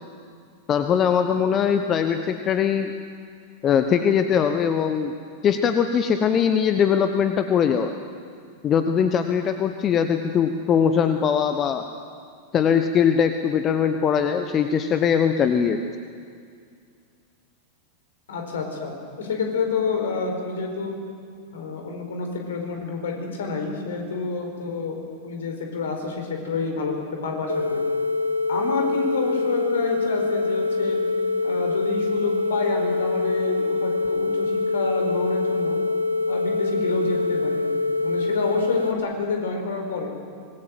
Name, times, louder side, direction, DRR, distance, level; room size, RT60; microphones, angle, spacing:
voice 1, 0.7-2.9 3.6-5.1 5.4-7.9 8.6-11.8 12.5-15.8, left 7 dB, 30° left, 8 dB, 1.1 m, -21 dB
voice 2, 18.3-21.0 21.5-27.8 28.5-31.0 31.4-35.8 36.3-40.1, left 4 dB, 60° left, 3 dB, 4.7 m, -29 dB
sound 1, 27.5-38.9, left 3 dB, 85° right, 1.4 m, -24 dB
25.0 x 20.5 x 7.8 m, 2.2 s
figure-of-eight pair, 90°, 0 cm